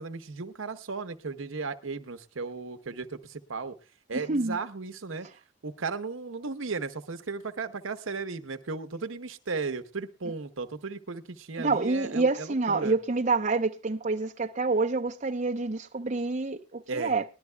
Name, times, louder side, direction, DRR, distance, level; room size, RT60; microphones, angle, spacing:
voice 1, 0.0-3.7 4.1-5.3 5.6-13.0 16.9-17.1, right 4 dB, 75° right, 0.9 m, -35 dB
voice 2, 11.6-17.2, right 3 dB, 35° right, 0.6 m, -27 dB
20.0 x 12.0 x 2.2 m
head